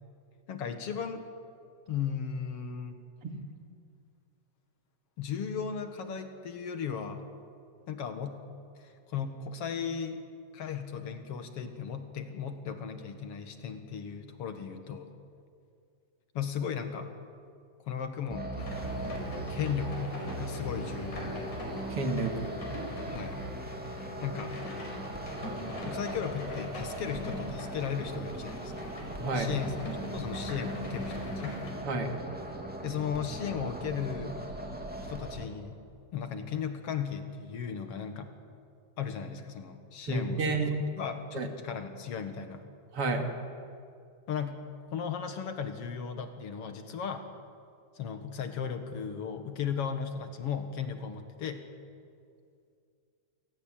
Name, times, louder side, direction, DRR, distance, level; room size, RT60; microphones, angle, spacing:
voice 1, 0.5-1.3 1.9-3.0 5.2-7.2 7.9-8.4 8.8-10.2 10.5-15.1 16.3-17.1 17.9-18.8 19.5-21.6 23.1-23.4 24.2-24.6 25.8-28.9 29.3-29.8 30.0-31.6 32.8-34.3 35.1-35.8 36.1-38.3 39.0-40.6 41.0-42.7 44.3-44.6 44.9-47.3 48.0-51.6, left 7 dB, 55° left, 7 dB, 2.3 m, -36 dB
sound 1, 18.3-35.5, right 1 dB, 5° right, 2.1 m, -39 dB
sound 2, 18.6-31.7, equal, 75° left, 6.5 m, -41 dB
voice 2, 21.9-22.5 29.2-29.5 31.8-32.1 40.1-40.7 41.3-41.5 42.9-43.2, right 3 dB, 50° right, 4 dB, 2.9 m, -30 dB
27.5 x 17.5 x 8.9 m, 2.4 s
omnidirectional pair, 3.5 m